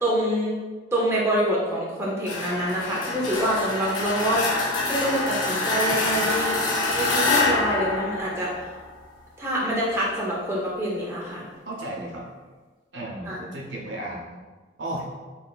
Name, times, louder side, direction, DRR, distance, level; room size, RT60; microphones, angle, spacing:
voice 1, 0.0-0.6 0.9-4.4 4.9-6.6 6.9-8.5 9.4-11.4 13.3-13.4, equal, 15° right, -6 dB, 0.6 m, -26 dB
sound 1, 2.3-9.0, left 2 dB, 80° left, 0.6 m, -26 dB
voice 2, 5.8-6.3 11.6-12.3 12.9-14.4 14.8-15.1, right 1 dB, 65° right, -3 dB, 0.8 m, -34 dB
4.1 x 3.2 x 2.3 m, 1.3 s
head